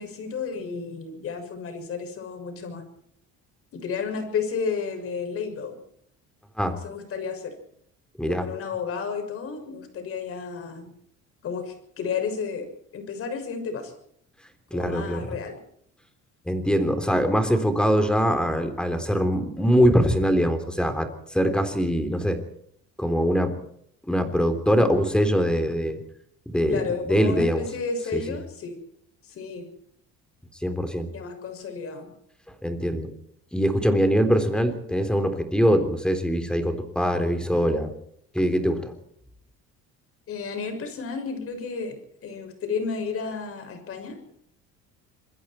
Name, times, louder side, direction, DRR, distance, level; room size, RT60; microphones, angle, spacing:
voice 1, 0.0-2.8 3.7-5.8 6.8-7.5 8.2-10.9 11.4-12.7 12.9-13.9 14.7-15.6 26.7-28.8 29.3-29.7 31.1-32.1 40.3-44.2, left 5 dB, 50° left, 7 dB, 6.4 m, -32 dB
voice 2, 8.2-8.5 14.7-15.4 16.5-22.4 23.0-23.6 24.1-26.0 26.5-27.7 28.1-28.4 30.6-31.1 32.6-33.1 33.5-37.9 38.3-38.9, equal, 5° left, 7 dB, 3.5 m, -23 dB
27.0 x 21.5 x 4.5 m, 0.69 s
cardioid pair, 135°, 29 cm